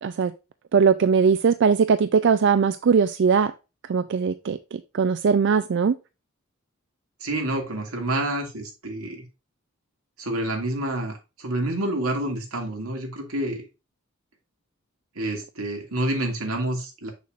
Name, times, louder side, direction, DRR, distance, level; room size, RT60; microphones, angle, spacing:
voice 1, 0.0-0.3 0.7-3.5 3.9-5.9, right 6 dB, 55° right, 0.4 m, -20 dB
voice 2, 7.2-9.2 10.2-13.6 15.2-17.1, right 1 dB, 85° right, 2.3 m, -28 dB
6.9 x 6.6 x 2.5 m
head